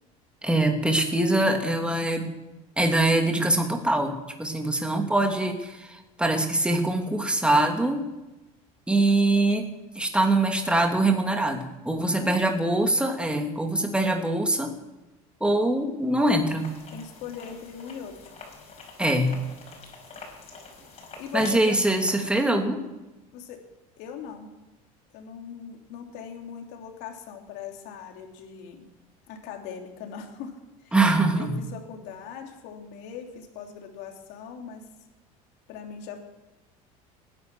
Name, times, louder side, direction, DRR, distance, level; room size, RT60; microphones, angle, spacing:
voice 1, 0.4-2.3 2.8-4.1 4.4-8.1 8.9-9.7 9.9-14.7 15.4-16.7 19.0-19.4 21.3-22.8 30.9-31.6, right 2 dB, 5° right, 3 dB, 2.7 m, -23 dB
voice 2, 12.1-12.4 16.9-18.3 21.2-21.8 23.3-23.6 24.0-24.5 25.1-28.8 29.3-30.5 30.8-31.0 31.3-34.8 35.7-36.2, left 7 dB, 70° left, 3 dB, 3.1 m, -40 dB
sound 1, 16.6-22.1, left 3 dB, 35° left, 6.0 m, -45 dB
18.5 x 10.5 x 6.2 m, 1.0 s
supercardioid pair, 90°, 18 cm